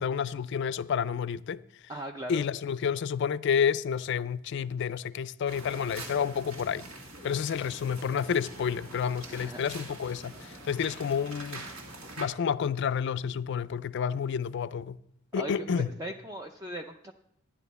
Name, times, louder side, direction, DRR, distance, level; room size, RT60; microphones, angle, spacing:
voice 1, 0.0-1.6 2.3-6.8 7.2-11.7 12.2-15.0 15.3-15.9, left 7 dB, 55° left, 0.3 m, -30 dB
voice 2, 1.9-2.4 9.3-9.6 15.4-17.1, right 1 dB, 15° right, 0.4 m, -39 dB
sound 1, 5.5-12.3, right 2 dB, 70° right, 2.1 m, -44 dB
13.0 x 9.9 x 4.1 m
head